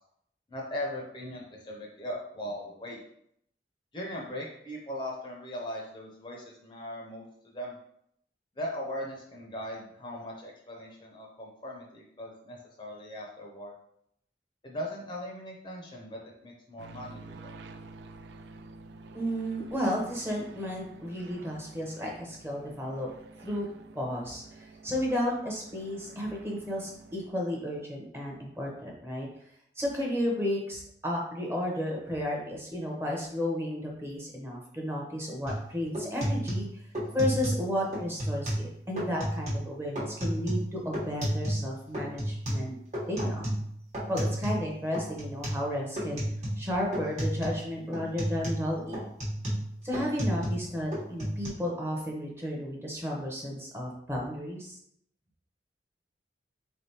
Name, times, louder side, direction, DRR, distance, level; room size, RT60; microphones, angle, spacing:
voice 1, 0.5-3.0 3.9-7.7 8.6-13.7 14.6-17.5, left 1 dB, 25° left, -1 dB, 0.5 m, -39 dB
sound 1, 16.8-27.3, right 3 dB, 75° right, 0.3 m, -50 dB
voice 2, 19.1-23.1 23.4-23.7 23.9-29.3 29.8-36.8 37.1-42.8 43.1-43.6 44.1-46.2 46.6-49.0 49.8-54.8, equal, 15° right, -1 dB, 0.7 m, -33 dB
sound 2, 35.5-35.6 35.9-37.7 37.9-38.7 39.0-39.7 40.0-41.7 41.9-44.7 44.9-45.7 46.0-46.7 46.9-47.6 47.9-50.7 50.9-51.5, equal, 40° right, 1.0 m, -32 dB
3.7 x 3.3 x 2.8 m, 0.72 s
head